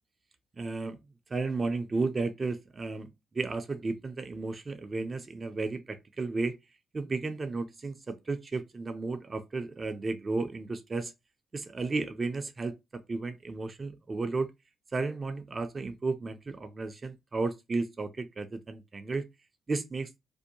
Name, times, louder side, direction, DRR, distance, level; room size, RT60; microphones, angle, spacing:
voice 1, 0.6-1.0 1.3-3.1 3.3-6.6 6.9-11.1 11.5-14.5 14.9-19.2 19.7-20.1, right 3 dB, 35° right, 0.4 m, -33 dB
2.6 x 2.1 x 2.7 m
cardioid pair, 75°, 0 cm